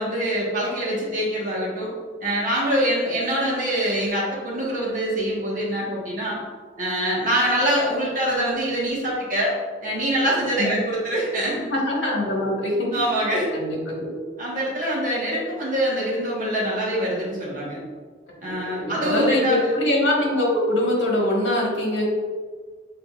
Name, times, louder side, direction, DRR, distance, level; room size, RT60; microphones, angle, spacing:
voice 1, 0.0-1.9 2.2-6.4 6.8-9.5 9.8-11.6 12.9-13.5 14.4-17.8 18.4-19.8, right 1 dB, 45° right, -5 dB, 1.2 m, -24 dB
voice 2, 11.7-13.1 13.5-14.2 18.4-22.1, left 1 dB, 75° left, -3 dB, 1.4 m, -23 dB
6.1 x 3.6 x 2.4 m, 1.5 s
head